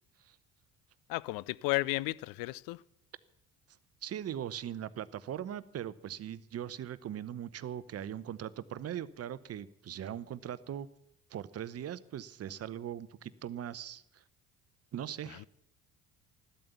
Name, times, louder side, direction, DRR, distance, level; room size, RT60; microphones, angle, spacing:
voice 1, 1.1-2.8, left 20 dB, 55° left, 0.5 m, -33 dB
voice 2, 4.0-10.9 11.3-14.2 14.9-15.5, right 10 dB, 35° right, 0.8 m, -40 dB
14.0 x 12.5 x 6.9 m
figure-of-eight pair, 55°, 41 cm